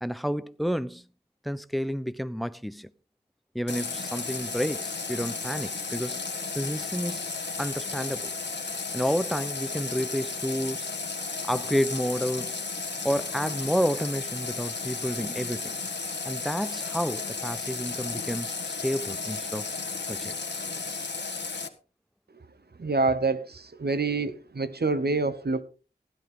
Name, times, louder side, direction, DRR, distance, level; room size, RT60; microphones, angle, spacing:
voice 1, 0.0-1.0 1.4-2.9 3.5-6.2 6.5-7.3 7.6-8.3 8.9-10.9 11.4-12.6 13.0-15.7 16.2-19.7 20.1-20.4, equal, ahead, 0.8 m, -30 dB
Water tap faucet, 3.7-21.7, left 4 dB, 90° left, 1.5 m, -34 dB
voice 2, 22.8-25.6, right 3 dB, 65° right, 1.0 m, -27 dB
15.5 x 11.0 x 3.8 m
wide cardioid pair, 45°, 18 cm